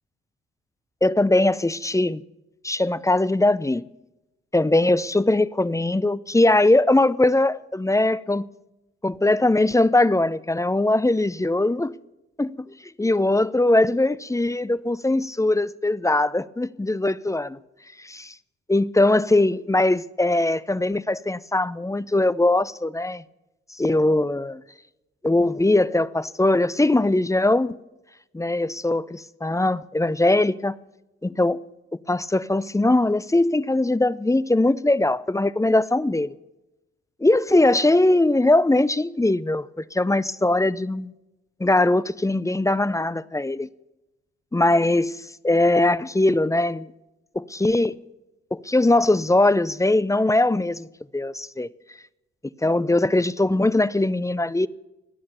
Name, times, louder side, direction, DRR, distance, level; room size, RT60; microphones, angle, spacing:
voice 1, 1.0-2.2 2.6-3.8 4.5-8.5 9.0-11.9 12.4-12.7 13.0-17.6 18.0-18.3 18.7-23.2 23.8-24.6 25.2-27.7 28.3-30.7 31.2-31.6 32.1-36.3 37.2-41.1 41.6-43.7 44.5-45.2 45.4-46.9 47.3-48.0 48.5-50.9 51.1-51.7 52.6-54.7, left 2 dB, 10° left, 0.6 m, -21 dB
22.5 x 8.7 x 7.0 m
hypercardioid pair, 40°, 34 cm